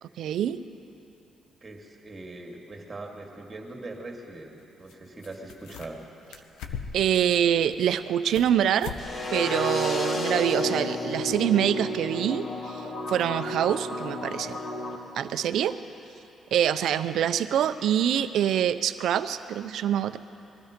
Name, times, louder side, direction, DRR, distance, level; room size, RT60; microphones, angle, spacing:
voice 1, 0.2-0.6 6.9-8.9 9.3-14.6 15.1-15.8 16.5-20.2, right 10 dB, 75° right, 12 dB, 0.5 m, -25 dB
voice 2, 1.6-6.0, right 2 dB, 30° right, 1 dB, 2.3 m, -41 dB
sound 1, 4.9-5.0 5.2-6.0 6.3-7.1 7.6-8.5 8.8-9.1 9.4-9.5 10.0-10.1, left 7 dB, 90° left, 0.9 m, -39 dB
sound 2, 9.0-15.0, left 1 dB, 45° left, 1.5 m, -31 dB
21.0 x 13.0 x 5.1 m, 2.9 s
cardioid pair, 90°, 0 cm